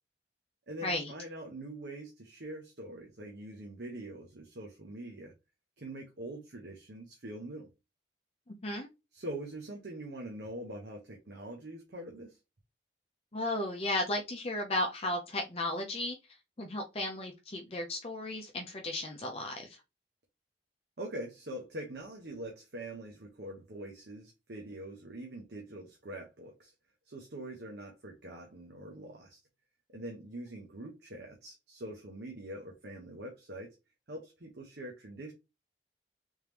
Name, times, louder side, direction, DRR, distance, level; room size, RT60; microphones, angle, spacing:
voice 1, 0.7-5.3 5.8-7.7 9.1-12.4 21.0-26.7 27.0-29.4 29.9-33.8 34.1-35.3, right 1 dB, 75° right, 0.9 m, -44 dB
voice 2, 8.5-8.9 13.3-16.2 16.6-19.8, left 1 dB, 35° left, 0.6 m, -34 dB
3.5 x 3.1 x 3.3 m
head